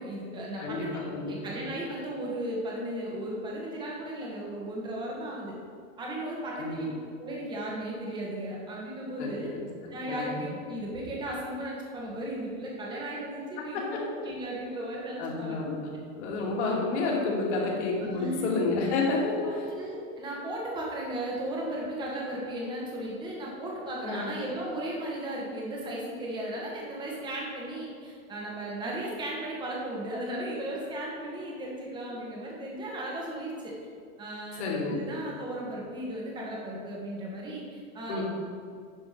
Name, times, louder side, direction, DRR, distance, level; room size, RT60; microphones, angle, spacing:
voice 1, 0.0-5.5 6.0-9.5 9.9-15.6 18.0-18.6 19.4-33.7 34.2-34.6 34.9-38.2, right 1 dB, 10° right, -3 dB, 1.4 m, -36 dB
voice 2, 0.6-1.6 6.6-6.8 9.2-9.7 10.1-10.4 13.7-13.8 15.2-19.7 24.0-24.2 34.6-35.0 38.1-38.2, left 3 dB, 50° left, -3 dB, 2.5 m, -30 dB
10.0 x 5.7 x 5.1 m, 2.2 s
supercardioid pair, 170°, 42 cm